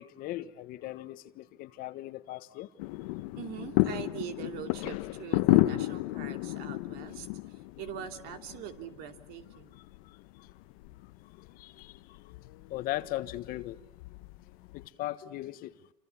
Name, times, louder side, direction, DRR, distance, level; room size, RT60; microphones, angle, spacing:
voice 1, 0.0-2.7 11.4-12.0 12.7-13.8 14.7-15.7, left 15 dB, 55° left, 1.3 m, -38 dB
sound 1, 2.8-14.9, left 18 dB, 75° left, 1.0 m, -33 dB
voice 2, 3.4-9.7, right 10 dB, 60° right, 3.0 m, -43 dB
28.0 x 25.5 x 7.1 m
supercardioid pair, 110°, 18 cm